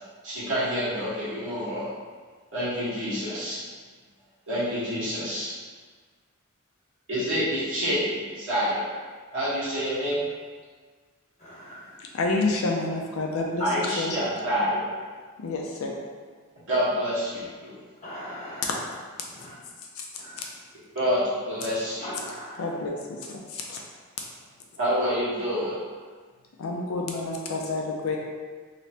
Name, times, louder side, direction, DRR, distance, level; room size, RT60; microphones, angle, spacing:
voice 1, 0.2-1.9 2.5-3.6 4.5-5.5 7.1-8.9 9.3-10.2 13.6-14.9 16.7-17.7 20.9-22.1 24.8-25.8, equal, 65° right, -11 dB, 1.3 m, -27 dB
voice 2, 11.4-11.9 18.0-18.8 19.3-19.5 20.2-20.4 22.0-22.8, equal, 35° left, -8 dB, 1.2 m, -40 dB
voice 3, 12.1-14.2 15.4-16.0 20.0-20.1 22.6-23.8 26.6-28.2, left 3 dB, 70° left, 0 dB, 0.4 m, -29 dB
3.2 x 2.8 x 2.8 m, 1.5 s
head